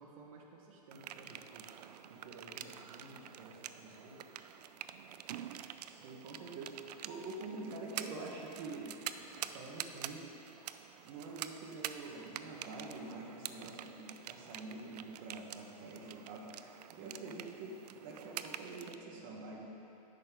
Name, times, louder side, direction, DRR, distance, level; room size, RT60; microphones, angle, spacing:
voice 1, 0.0-1.7 2.1-4.4, right 2 dB, 60° right, 0 dB, 1.5 m, -55 dB
sound 1, 0.9-19.0, right 10 dB, 80° right, 0.4 m, -47 dB
voice 2, 5.8-10.3 11.0-19.6, right 3 dB, 35° right, -2 dB, 1.4 m, -46 dB
10.5 x 7.7 x 3.8 m, 2.9 s
supercardioid pair, 165°, 21 cm